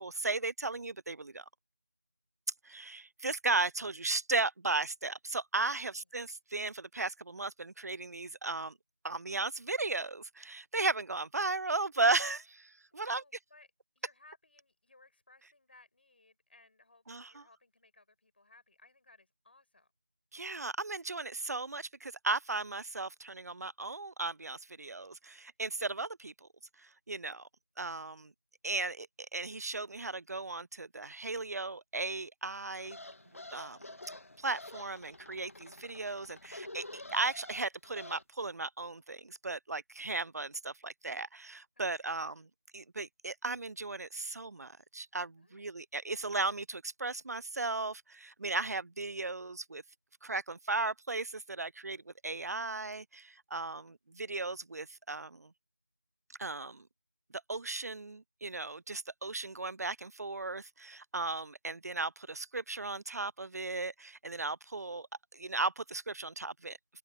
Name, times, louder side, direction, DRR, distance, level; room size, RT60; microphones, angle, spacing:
voice 1, 0.0-1.4 2.6-8.7 9.0-13.2 17.1-17.3 20.3-26.5 26.8-27.5 27.8-28.3 28.6-29.1 29.3-33.0 33.5-33.9 34.4-42.5 42.7-49.8 50.2-55.5 56.4-56.8 57.5-65.1 65.3-66.8, right 3 dB, 75° right, 0.4 m, -36 dB
voice 2, 5.7-6.1 12.9-13.7 14.0-19.9 25.3-25.6 41.8-42.2 45.4-45.7, left 2 dB, 40° left, 5.3 m, -63 dB
sound 1, 32.8-38.2, left 2 dB, 55° left, 1.7 m, -48 dB
open air
figure-of-eight pair, 170°, 9 cm